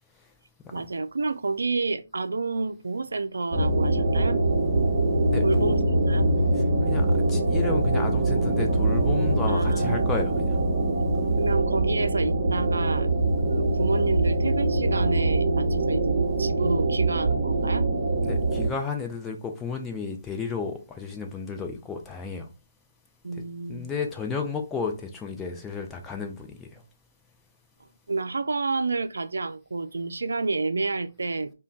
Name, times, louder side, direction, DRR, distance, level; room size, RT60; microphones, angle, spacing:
voice 1, 0.7-4.4 5.4-6.2 9.5-10.1 11.4-13.1 13.4-17.9 23.2-23.9 28.1-31.5, right 3 dB, 75° right, 0.3 m, -29 dB
sound 1, 3.5-18.7, right 2 dB, 20° right, 0.8 m, -23 dB
voice 2, 5.3-5.7 6.5-10.6 18.2-22.5 23.7-26.8, left 5 dB, 10° left, 0.4 m, -33 dB
2.2 x 2.2 x 3.8 m
hypercardioid pair, 155°, 0 cm